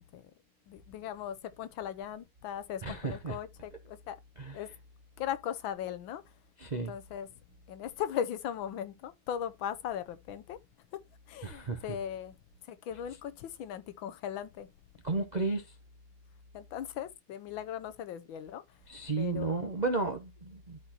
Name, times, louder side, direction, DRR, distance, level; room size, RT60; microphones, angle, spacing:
voice 1, 0.7-4.2 4.5-4.7 5.2-6.2 6.9-7.3 7.7-10.6 10.9-11.0 11.3-12.3 12.6-14.7 16.5-18.6 19.2-19.8, left 9 dB, 70° left, 1.5 m, -38 dB
voice 2, 2.8-3.4 4.4-4.6 6.6-6.9 11.4-12.0 15.0-15.6 18.9-20.8, right 3 dB, 60° right, 0.4 m, -33 dB
12.5 x 4.4 x 2.9 m
omnidirectional pair, 2.4 m